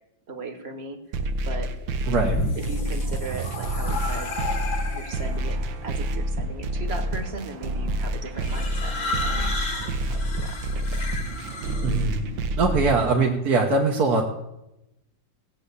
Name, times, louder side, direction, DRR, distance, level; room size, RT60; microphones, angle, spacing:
voice 1, 0.3-1.0 1.4-1.7 2.6-4.3 4.9-9.0 9.2-9.7 10.0-10.9, right 3 dB, 35° right, 7 dB, 1.7 m, -37 dB
sound 1, 1.1-13.1, right 1 dB, 90° right, 1.7 m, -28 dB
sound 2, 2.0-5.5 6.4-6.8 8.4-12.0, left 3 dB, 85° left, 3.3 m, -32 dB
voice 2, 2.1-2.4 11.8-12.2 12.6-14.2, right 3 dB, 55° right, -1 dB, 1.8 m, -22 dB
17.5 x 7.9 x 8.4 m, 0.91 s
omnidirectional pair, 2.0 m